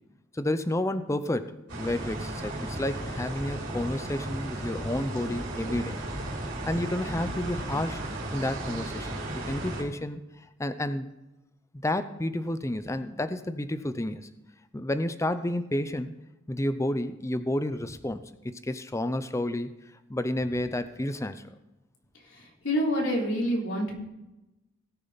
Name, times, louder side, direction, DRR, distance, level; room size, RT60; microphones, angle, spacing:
voice 1, 0.3-6.0 6.7-8.0 8.3-10.2 10.6-11.1 11.8-14.3 14.7-16.1 16.5-19.7 20.1-21.4, left 1 dB, 15° left, 11 dB, 0.6 m, -30 dB
sound 1, 1.7-9.8, right 1 dB, 75° right, 3.9 m, -35 dB
voice 2, 22.2-23.9, equal, 70° left, -2 dB, 3.6 m, -28 dB
19.0 x 6.8 x 4.0 m, 0.97 s
head